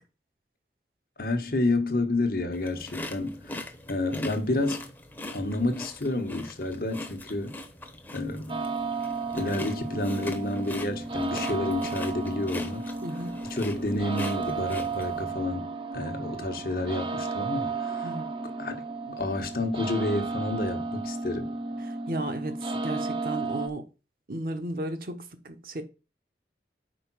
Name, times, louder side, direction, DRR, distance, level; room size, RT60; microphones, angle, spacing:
voice 1, 1.2-3.5 3.9-4.9 5.3-7.6 8.1-8.6 9.3-12.8 13.5-15.7 15.9-18.1 18.6-21.5, left 2 dB, 55° left, 1.2 m, -30 dB
sound 1, 2.5-15.2, left 1 dB, 10° left, 0.9 m, -41 dB
sound 2, 8.5-23.7, right 3 dB, 30° right, 0.7 m, -33 dB
voice 2, 13.0-13.4 18.0-18.3 21.8-23.8 24.3-25.8, right 1 dB, 55° right, 1.0 m, -34 dB
5.2 x 4.9 x 6.1 m
head